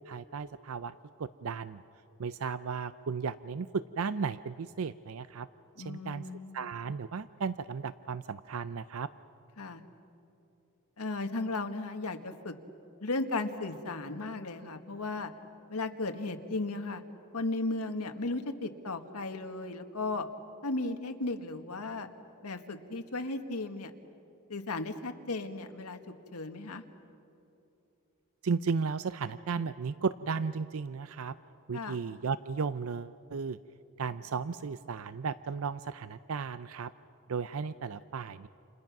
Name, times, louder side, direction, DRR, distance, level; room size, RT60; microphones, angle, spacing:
voice 1, 0.1-1.8 2.2-5.5 5.8-6.2 6.5-9.1 28.4-31.4 31.7-33.6 34.0-36.9 37.3-38.5, right 5 dB, 65° right, 14 dB, 0.5 m, -35 dB
voice 2, 5.8-6.7 9.6-9.8 11.0-12.5 13.0-15.3 15.7-17.0 17.3-20.3 20.6-22.1 22.4-23.9 24.5-26.0 26.3-26.8 31.7-32.0, left 2 dB, 90° left, 6 dB, 1.6 m, -35 dB
30.0 x 28.5 x 6.0 m, 2.9 s
head